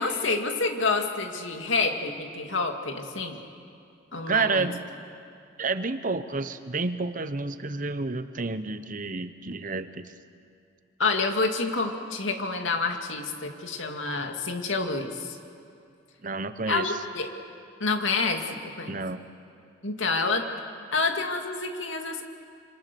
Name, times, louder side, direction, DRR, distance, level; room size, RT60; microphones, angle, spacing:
voice 1, 0.0-3.4 4.1-4.7 11.0-15.4 16.7-17.3 17.8-19.0 19.8-20.4 20.9-22.2, left 3 dB, 85° left, 4 dB, 2.3 m, -28 dB
voice 2, 4.3-4.8 5.6-10.1 16.2-16.9 18.9-19.2, right 3 dB, 45° right, 11 dB, 1.0 m, -29 dB
26.5 x 26.0 x 6.9 m, 2.5 s
head